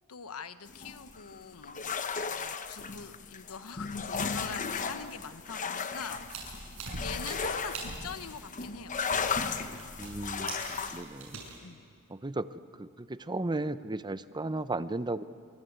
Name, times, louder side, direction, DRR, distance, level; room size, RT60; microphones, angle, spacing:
voice 1, 0.1-9.4 11.6-11.9, left 5 dB, 80° left, 11 dB, 1.1 m, -44 dB
sound 1, 0.7-11.0, left 5 dB, 35° left, 1.0 m, -35 dB
sound 2, 6.1-11.6, right 3 dB, 70° right, 7.3 m, -43 dB
voice 2, 10.0-10.6 10.9-11.4 12.1-12.5 12.8-15.2, right 2 dB, 20° right, 13 dB, 0.7 m, -34 dB
26.0 x 24.0 x 8.1 m, 2.2 s
head